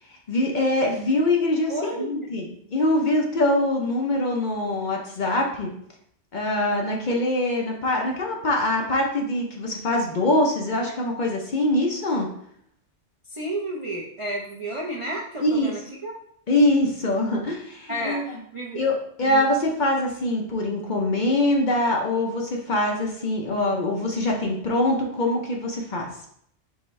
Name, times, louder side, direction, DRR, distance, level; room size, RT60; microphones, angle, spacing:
voice 1, 0.1-5.7 6.3-12.3 15.4-15.7 16.5-18.4 18.7-26.1, left 1 dB, 50° left, 0 dB, 0.7 m, -23 dB
voice 2, 1.7-2.3 13.3-16.1 17.9-18.9 19.2-19.5, right 1 dB, 45° right, -3 dB, 0.4 m, -32 dB
4.6 x 3.3 x 3.1 m, 0.69 s
omnidirectional pair, 1.2 m